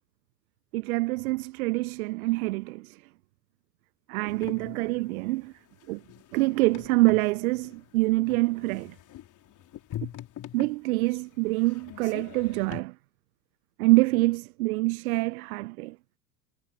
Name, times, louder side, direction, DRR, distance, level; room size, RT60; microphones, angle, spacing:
voice 1, 0.7-3.0 4.1-5.5 5.9-6.0 6.3-8.9 10.5-12.9 13.8-16.0, right 21 dB, 60° right, 0.8 m, -26 dB
sound 1, 4.3-12.8, left 12 dB, 40° left, 4.1 m, -44 dB
hypercardioid pair, 85°, 48 cm